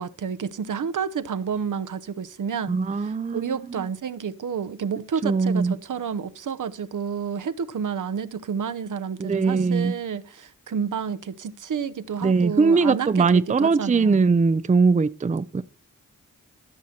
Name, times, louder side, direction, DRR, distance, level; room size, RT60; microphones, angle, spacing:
voice 1, 0.0-14.2, right 7 dB, 65° right, 0.8 m, -30 dB
voice 2, 2.7-3.9 5.2-5.7 9.2-9.9 12.2-15.6, right 4 dB, 20° right, 0.5 m, -21 dB
14.5 x 6.2 x 4.3 m
cardioid pair, 45°, 33 cm